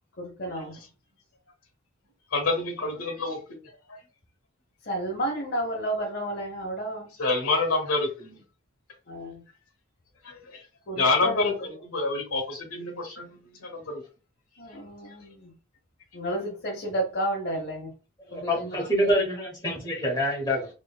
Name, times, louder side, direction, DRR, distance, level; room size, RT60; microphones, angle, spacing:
voice 1, 0.2-0.8 4.8-7.2 9.1-9.4 10.9-11.6 14.6-15.5 16.1-17.9 18.3-19.1, right 1 dB, 50° left, 1.0 m, -32 dB
voice 2, 2.3-3.6 7.2-8.4 10.2-10.6 11.0-11.5 11.8-14.0 15.0-15.2, left 3 dB, 85° left, 1.3 m, -27 dB
voice 3, 18.3-20.7, equal, 20° left, 1.1 m, -26 dB
3.4 x 3.0 x 2.3 m
head